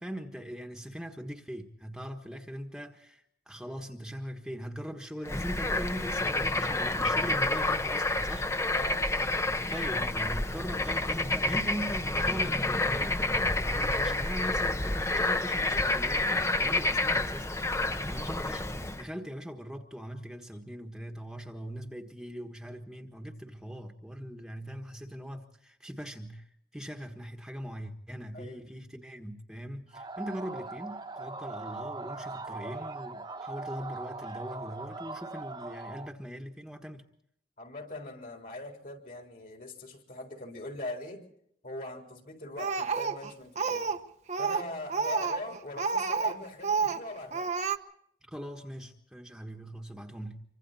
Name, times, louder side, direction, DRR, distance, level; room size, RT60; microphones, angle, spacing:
voice 1, 0.0-8.5 9.7-17.5 18.0-37.1 48.3-50.4, equal, 5° right, 1.5 m, -41 dB
Bird / Frog, 5.2-19.0, left 2 dB, 15° left, 0.8 m, -29 dB
voice 2, 8.7-9.1 17.8-18.1 28.3-28.6 37.6-41.3 41.6-43.9 44.4-47.6, left 2 dB, 50° left, 4.0 m, -42 dB
sound 1, 29.9-36.1, right 3 dB, 25° right, 1.3 m, -40 dB
Speech, 42.6-44.0 44.3-46.4 46.6-47.0 47.3-47.8, right 5 dB, 40° right, 1.0 m, -29 dB
26.0 x 25.0 x 4.2 m
head